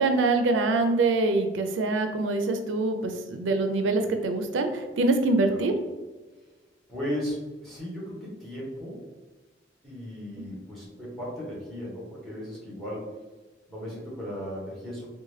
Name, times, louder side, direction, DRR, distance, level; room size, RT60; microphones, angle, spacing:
voice 1, 0.0-5.7, right 3 dB, 90° right, 6 dB, 0.4 m, -24 dB
voice 2, 6.9-7.4 7.6-9.0 9.8-13.1 13.7-15.1, equal, ahead, -6 dB, 1.2 m, -36 dB
3.7 x 2.2 x 3.2 m, 1.2 s
head